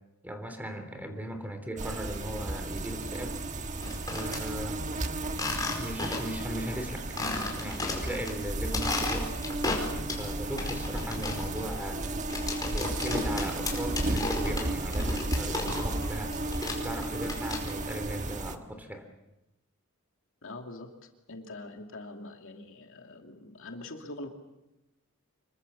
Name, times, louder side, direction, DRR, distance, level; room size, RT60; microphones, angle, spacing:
voice 1, 0.2-3.4 4.1-4.8 5.7-7.1 7.6-9.3 10.2-12.2 12.7-16.3 16.8-19.1, equal, 10° right, 6 dB, 3.2 m, -38 dB
sound 1, 1.8-18.6, right 2 dB, 35° right, 1.4 m, -34 dB
sound 2, 3.7-4.4 5.3-6.4 6.7-6.8 7.2-8.3 8.6-10.3 10.6-16.1 16.3-17.9, left 3 dB, 20° left, 4.9 m, -34 dB
sound 3, 8.9-18.3, right 1 dB, 80° right, 4.5 m, -50 dB
voice 2, 20.4-24.3, left 2 dB, 65° left, 3 dB, 2.9 m, -44 dB
26.5 x 23.0 x 7.1 m, 0.94 s
head